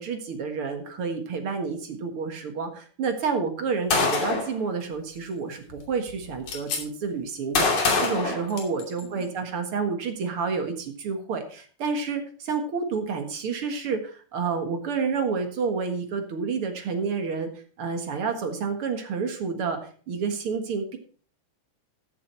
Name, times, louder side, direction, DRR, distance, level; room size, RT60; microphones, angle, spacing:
voice 1, 0.0-17.5 17.8-19.8 20.1-21.0, right 5 dB, 50° right, 6 dB, 2.2 m, -29 dB
Gunshot gunfire, 3.9-4.5 5.7-5.8 6.1-6.8 7.6-9.0, left 4 dB, 80° left, 4.3 m, -24 dB
14.0 x 7.4 x 4.5 m, 0.42 s
omnidirectional pair, 3.7 m